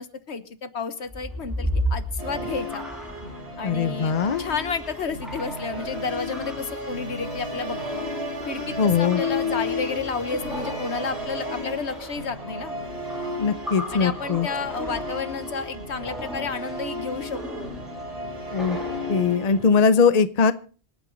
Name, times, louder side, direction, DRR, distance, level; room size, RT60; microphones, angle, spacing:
voice 1, 0.0-2.8 3.6-8.0 8.4-12.8 13.9-17.8, left 5 dB, 80° left, 12 dB, 1.5 m, -31 dB
sound 1, 1.1-19.8, equal, ahead, 3.6 m, -36 dB
Musical instrument, 2.2-19.8, left 1 dB, 80° right, 4.0 m, -33 dB
voice 2, 3.6-4.4 8.8-9.2 13.4-14.5 18.5-18.8 19.1-20.5, left 5 dB, 45° left, 14 dB, 0.8 m, -21 dB
26.0 x 8.9 x 3.9 m, 0.39 s
omnidirectional pair, 1.1 m